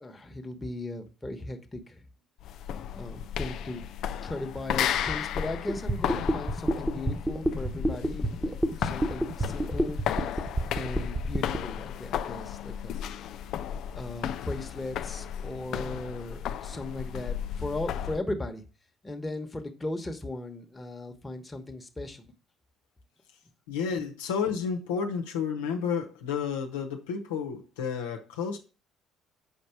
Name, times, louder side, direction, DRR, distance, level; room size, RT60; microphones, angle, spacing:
voice 1, 0.0-2.0 2.9-3.8 4.2-10.0 10.7-13.0 13.9-18.6 19.0-22.3, left 2 dB, 15° left, 1.2 m, -37 dB
sound 1, 2.4-18.2, left 9 dB, 55° left, 0.4 m, -34 dB
sound 2, 5.7-11.6, right 1 dB, 15° right, 1.1 m, -28 dB
voice 2, 23.7-28.6, left 6 dB, 75° left, 0.9 m, -31 dB
6.9 x 5.2 x 4.5 m
figure-of-eight pair, 55°, 0 cm